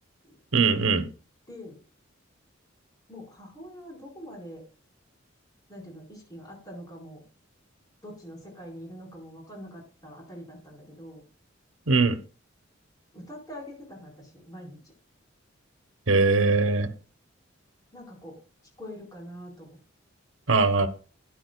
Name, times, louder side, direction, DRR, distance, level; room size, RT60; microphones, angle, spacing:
voice 1, 0.5-1.1 11.9-12.2 16.1-16.9 20.5-20.9, right 4 dB, 90° right, 10 dB, 1.1 m, -21 dB
voice 2, 1.5-1.8 3.1-4.6 5.7-7.2 8.0-11.2 13.1-14.9 17.9-18.4 18.8-19.8, equal, 20° left, -3 dB, 4.4 m, -44 dB
12.5 x 10.0 x 2.3 m, 0.37 s
head